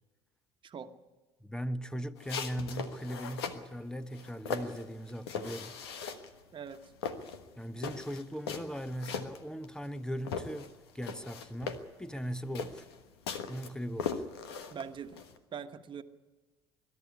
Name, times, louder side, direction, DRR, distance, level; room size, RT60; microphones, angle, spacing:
voice 1, 1.4-5.8 7.6-10.7 10.9-12.9 13.5-14.2, equal, 5° left, 1.0 m, -39 dB
sound 1, 2.2-3.7 4.1-6.4 6.7-10.0 10.2-15.4, left 6 dB, 80° left, 1.3 m, -39 dB
voice 2, 14.7-15.2 15.5-16.0, right 7 dB, 40° right, 1.4 m, -42 dB
22.0 x 12.0 x 9.7 m
hypercardioid pair, 65°, 13 cm